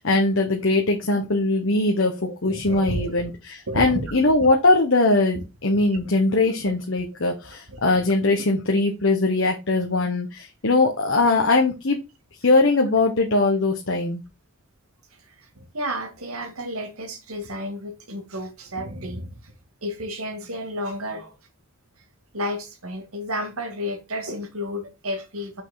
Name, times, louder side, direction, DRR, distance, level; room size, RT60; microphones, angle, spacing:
voice 1, 0.0-12.0 12.4-14.2, left 2 dB, 60° left, 1.2 m, -21 dB
voice 2, 2.1-3.1 3.7-4.3 5.9-6.0 7.7-8.1 15.1-19.5 19.8-21.4 22.3-25.6, equal, 85° right, 2.1 m, -32 dB
6.2 x 5.5 x 4.2 m
head